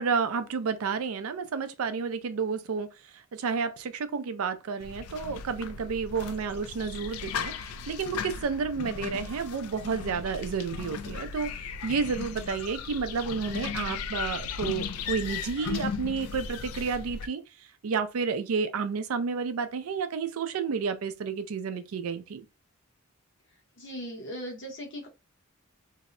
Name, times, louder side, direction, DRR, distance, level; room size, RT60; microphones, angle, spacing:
voice 1, 0.0-2.9 3.3-17.4 17.8-22.4, right 5 dB, 75° right, 0.4 m, -31 dB
sound 1, 4.8-17.3, left 6 dB, 80° left, 0.3 m, -36 dB
voice 2, 23.8-25.1, equal, 60° left, 0.9 m, -38 dB
2.7 x 2.0 x 2.5 m
head